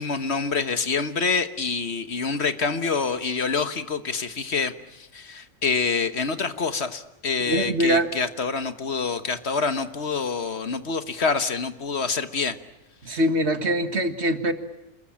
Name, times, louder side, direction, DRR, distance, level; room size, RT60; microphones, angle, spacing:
voice 1, 0.0-12.6 13.1-13.2, left 5 dB, 55° left, 11 dB, 1.5 m, -26 dB
voice 2, 7.4-8.1 13.0-14.5, right 1 dB, 55° right, 9 dB, 2.1 m, -23 dB
28.0 x 22.0 x 8.8 m, 0.88 s
omnidirectional pair, 1.3 m